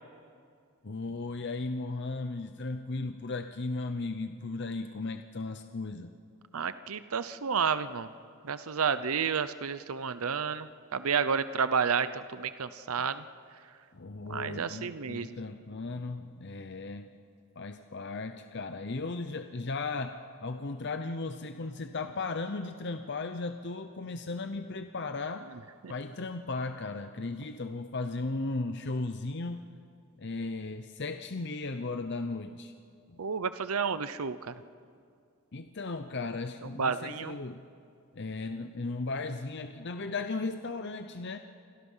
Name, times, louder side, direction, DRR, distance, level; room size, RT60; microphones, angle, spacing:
voice 1, 0.8-6.1 13.0-13.1 13.9-17.1 17.6-25.5 25.9-29.7 30.2-32.7 33.1-33.2 35.5-37.6 38.1-41.4, left 3 dB, 50° left, 8 dB, 0.7 m, -36 dB
voice 2, 6.5-8.1 8.4-13.2 14.3-15.3 25.8-25.9 33.2-34.5 36.8-37.3, right 6 dB, 75° right, 13 dB, 0.7 m, -31 dB
29.5 x 26.0 x 5.6 m, 2.3 s
head